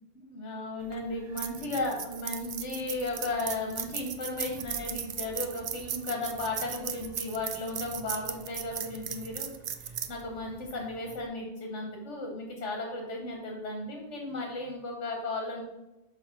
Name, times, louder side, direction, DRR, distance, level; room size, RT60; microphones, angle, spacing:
voice 1, 0.1-15.6, left 2 dB, 85° left, 1 dB, 1.4 m, -35 dB
sound 1, 0.8-11.3, right 8 dB, 60° right, 0.4 m, -38 dB
6.4 x 2.9 x 5.8 m, 0.97 s
omnidirectional pair, 1.2 m